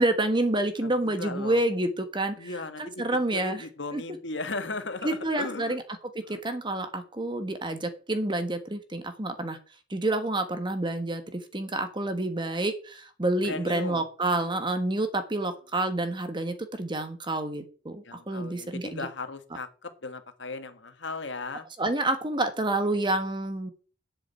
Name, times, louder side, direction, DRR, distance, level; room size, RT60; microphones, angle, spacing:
voice 1, 0.0-2.5 2.8-3.6 3.9-4.0 5.0-5.8 6.3-9.6 9.9-19.1 21.8-23.7, right 2 dB, 25° right, 8 dB, 1.4 m, -28 dB
voice 2, 0.8-1.6 2.4-3.0 3.3-5.8 6.2-6.4 13.4-14.0 18.0-21.7, left 3 dB, 75° left, 8 dB, 1.6 m, -37 dB
7.8 x 7.1 x 8.2 m, 0.39 s
head